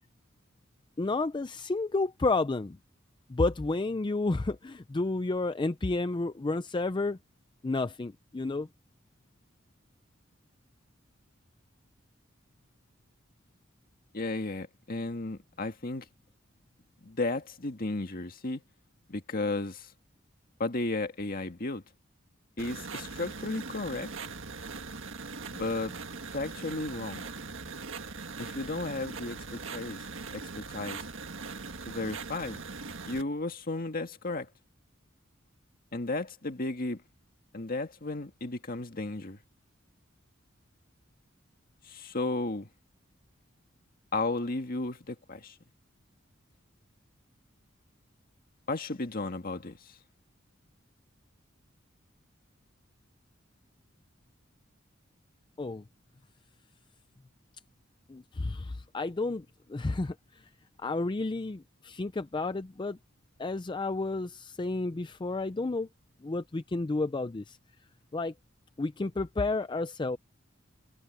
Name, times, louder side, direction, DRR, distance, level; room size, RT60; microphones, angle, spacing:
voice 1, 1.0-2.8 3.3-7.2 7.6-8.7 55.6-55.8 58.1-60.5 60.8-63.0 63.4-65.9 66.2-67.6 68.1-68.3 68.8-70.2, left 3 dB, 25° left, 0.5 m, -31 dB
voice 2, 14.1-16.1 17.0-18.6 19.1-19.9 20.6-21.8 22.6-24.1 25.5-25.9 26.3-27.2 28.4-30.0 30.3-31.0 31.9-32.6 33.1-34.5 35.9-37.0 37.5-39.4 41.9-42.7 44.1-45.6 48.7-49.8, left 2 dB, 45° left, 1.8 m, -34 dB
sound 1, 22.6-33.2, right 4 dB, 70° right, 1.8 m, -41 dB
head